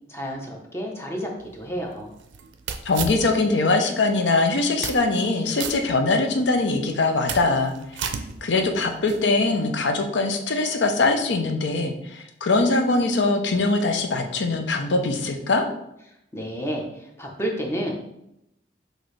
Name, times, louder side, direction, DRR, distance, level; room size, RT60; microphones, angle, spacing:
voice 1, 0.1-2.1 16.3-17.9, equal, 15° left, 0 dB, 0.6 m, -30 dB
sound 1, 1.4-3.7 4.1-4.2 4.7-5.3 5.6-6.5 6.9-9.3, right 6 dB, 90° right, 0.4 m, -34 dB
voice 2, 2.8-7.7 8.0-8.1 8.4-15.6, left 3 dB, 80° left, 4 dB, 0.6 m, -22 dB
6.0 x 2.6 x 3.2 m, 0.82 s
head